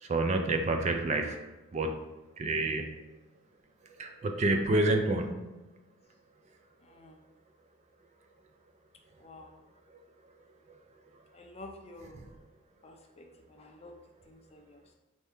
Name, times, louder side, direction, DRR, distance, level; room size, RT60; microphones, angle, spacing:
voice 1, 0.0-1.4 1.7-2.0 2.4-2.9 4.0-5.5, right 2 dB, 35° right, 5 dB, 0.3 m, -28 dB
voice 2, 6.8-7.2 9.2-9.5 11.3-12.2 12.8-13.9 14.3-14.9, left 2 dB, 30° left, 2 dB, 0.4 m, -50 dB
4.4 x 2.7 x 3.4 m, 1.1 s
head